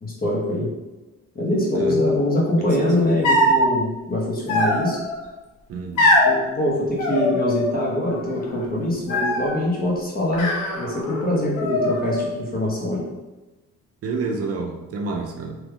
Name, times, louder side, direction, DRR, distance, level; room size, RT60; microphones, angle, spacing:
voice 1, 0.0-0.7 1.3-5.0 6.2-10.5 10.7-13.0, left 1 dB, 30° left, -3 dB, 1.0 m, -23 dB
voice 2, 3.0-3.4 5.7-6.1 14.0-15.6, right 4 dB, 50° right, 2 dB, 0.5 m, -29 dB
sound 1, 3.2-3.7 4.5-5.2 6.0-6.3 7.0-7.8 8.1-8.6 9.1-9.6 10.3-11.2 11.6-12.3, left 1 dB, 80° left, 0.9 m, -21 dB
3.3 x 3.0 x 2.3 m, 1.1 s
cardioid pair, 90°, 30 cm